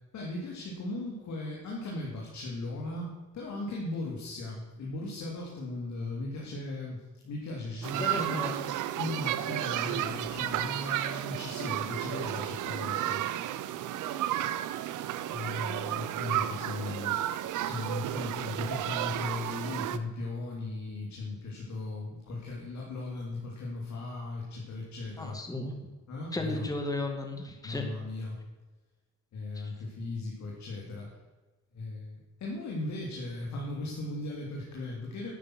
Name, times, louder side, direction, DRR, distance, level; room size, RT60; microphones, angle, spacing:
voice 1, 0.1-8.5 9.0-13.2 15.3-17.2 17.6-25.4 26.1-26.7 27.6-28.4 29.3-31.1 31.7-35.3, left 2 dB, 70° left, -2 dB, 3.0 m, -37 dB
sound 1, 7.8-20.0, right 12 dB, 85° right, 0.8 m, -32 dB
voice 2, 8.0-8.5 25.2-25.9 26.3-27.9, left 2 dB, 10° left, 4 dB, 1.9 m, -34 dB
11.0 x 8.6 x 6.3 m, 1.2 s
cardioid pair, 90°, 30 cm